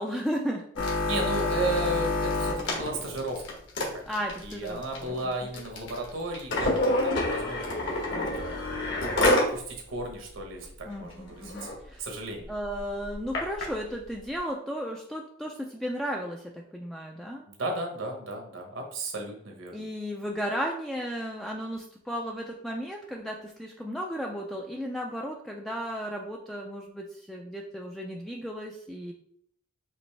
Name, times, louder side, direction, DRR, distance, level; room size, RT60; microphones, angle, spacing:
voice 1, 0.0-1.0 4.1-5.3 10.9-12.1 12.5-17.5 19.7-29.1, equal, ahead, -1 dB, 0.3 m, -34 dB
sound 1, 0.8-9.5 10.0-10.1 10.3-10.6 11.1-11.2 11.4-11.7 12.4-13.6 14.4-14.5, left 2 dB, 60° left, 1.2 m, -28 dB
voice 2, 1.1-3.6 3.9-4.0 4.4-8.1 8.4-8.6 9.5-11.5 12.0-12.5 17.5-19.9, right 2 dB, 75° right, 2 dB, 1.1 m, -34 dB
5.2 x 3.0 x 3.3 m, 0.67 s
head